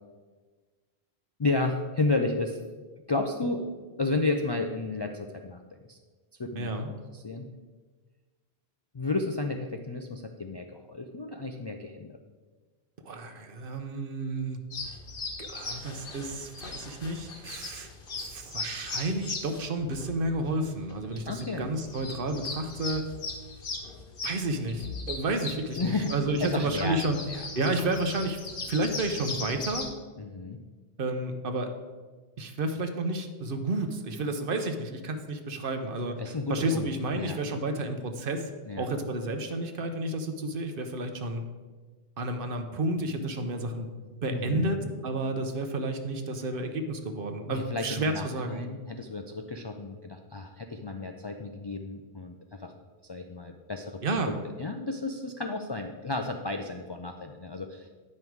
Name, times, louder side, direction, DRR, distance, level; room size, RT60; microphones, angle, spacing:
voice 1, 1.4-2.6 3.1-3.6 4.0-5.6 5.9-6.0 6.4-7.5 8.9-12.1 21.3-21.7 25.7-26.1 26.4-27.4 30.2-30.6 36.2-36.9 37.1-37.4 38.7-38.9 44.3-44.9 47.5-52.3 52.6-52.7 53.1-54.0 54.3-54.4 54.6-57.9, left 3 dB, 45° left, 4 dB, 0.3 m, -32 dB
voice 2, 6.5-6.9 13.0-14.6 15.4-17.9 18.2-23.0 24.2-27.2 27.6-28.4 28.7-29.9 31.0-31.7 32.4-38.5 38.8-41.4 42.2-43.9 44.2-48.6 54.0-54.4, right 2 dB, 60° right, 7 dB, 0.9 m, -31 dB
sound 1, 14.7-29.9, left 3 dB, 65° left, 1.2 m, -39 dB
9.6 x 5.5 x 4.6 m, 1.4 s
omnidirectional pair, 1.1 m